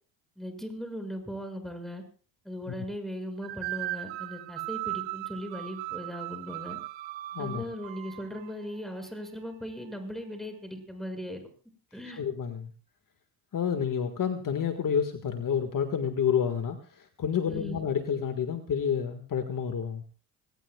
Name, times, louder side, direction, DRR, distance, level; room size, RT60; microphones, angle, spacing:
voice 1, 0.4-2.0 2.4-6.8 7.4-11.4 11.9-12.2 17.5-17.8, equal, ahead, 5 dB, 6.5 m, -38 dB
sound 1, 3.4-8.5, right 17 dB, 75° right, 1.0 m, -37 dB
voice 2, 7.3-7.6 12.1-12.7 13.5-20.0, left 7 dB, 45° left, 6 dB, 1.9 m, -29 dB
25.5 x 19.5 x 2.4 m, 0.38 s
supercardioid pair, 85°, 45 cm